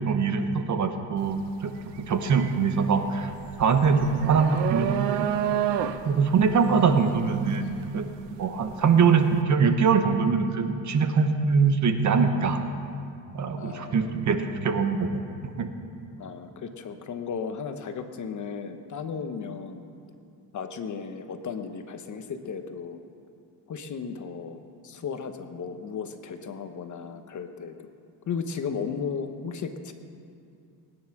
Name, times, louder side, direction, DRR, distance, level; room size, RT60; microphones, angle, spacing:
voice 1, 0.1-3.3 3.6-5.3 6.0-8.1 8.4-12.6 13.3-15.1 15.6-15.7, right 5 dB, 40° right, 7 dB, 1.2 m, -23 dB
sound 1, 1.2-1.4 1.8-8.8, right 10 dB, 85° right, 0.9 m, -30 dB
voice 2, 13.6-14.1 16.2-19.8 20.5-23.0 23.7-27.8 28.3-29.9, left 6 dB, 45° left, 7 dB, 1.1 m, -35 dB
20.5 x 9.9 x 6.0 m, 2.4 s
cardioid pair, 140°, 43 cm